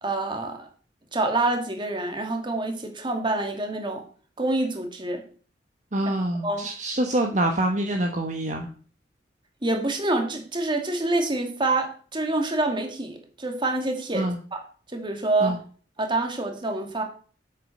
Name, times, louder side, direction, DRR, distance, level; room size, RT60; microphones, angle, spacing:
voice 1, 0.0-0.7 1.1-4.0 4.4-5.2 6.4-6.7 9.6-14.6 14.9-15.6 16.0-17.0, right 2 dB, 30° right, 4 dB, 2.3 m, -26 dB
voice 2, 5.9-8.7 14.1-14.4 15.4-15.6, right 1 dB, 45° right, 3 dB, 1.3 m, -25 dB
8.3 x 7.5 x 6.6 m, 0.42 s
head